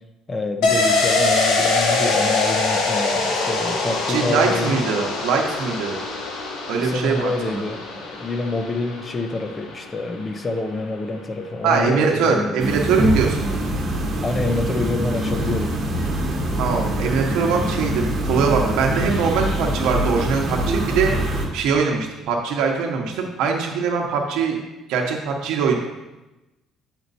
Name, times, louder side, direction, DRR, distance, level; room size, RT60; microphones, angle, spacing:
voice 1, 0.3-4.8 6.8-12.8 14.2-15.8, left 2 dB, 20° left, 7 dB, 0.6 m, -27 dB
sound 1, 0.6-10.0 10.3-10.4, left 3 dB, 85° left, 1.2 m, -23 dB
voice 2, 4.1-6.0 6.7-7.6 11.6-13.5 16.6-21.1 21.5-24.6 24.9-25.7, right 5 dB, 85° right, 1 dB, 0.9 m, -22 dB
sound 2, 12.6-21.5, right 1 dB, 35° right, 1.3 m, -24 dB
8.1 x 4.4 x 4.1 m, 1.0 s
cardioid pair, 165°, 0 cm